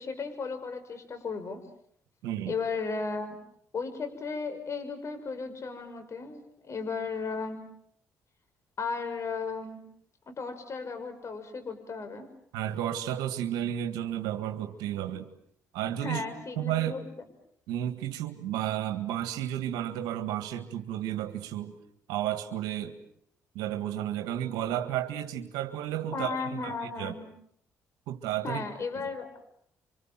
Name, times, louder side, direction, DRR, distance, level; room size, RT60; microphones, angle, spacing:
voice 1, 0.0-1.6 2.4-3.4 3.7-7.6 8.8-9.8 10.3-12.3 16.0-17.1 26.1-27.2 28.4-29.3, left 4 dB, 45° left, 5.9 m, -35 dB
voice 2, 2.2-2.6 12.5-15.3 15.7-16.2 16.6-17.0 17.7-21.8 22.1-23.0 23.6-27.2 28.1-28.6, right 11 dB, 85° right, 1.8 m, -32 dB
29.0 x 25.5 x 7.6 m
supercardioid pair, 65°, 7 cm